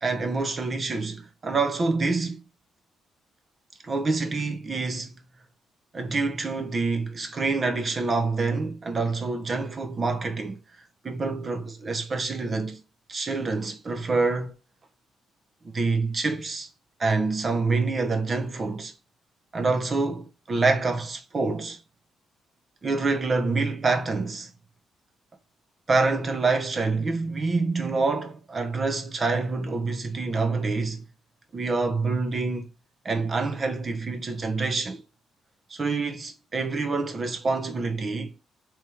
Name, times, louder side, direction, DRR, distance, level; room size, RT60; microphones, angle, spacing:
voice 1, 0.0-2.4 3.8-5.2 5.9-10.6 11.0-12.8 13.1-14.5 15.6-16.7 17.0-18.9 19.5-21.8 22.8-24.5 25.9-31.0 31.5-32.7 33.0-35.0 35.7-38.4, right 3 dB, 35° right, 0.7 m, -26 dB
3.3 x 3.0 x 3.4 m
cardioid pair, 90°, 0 cm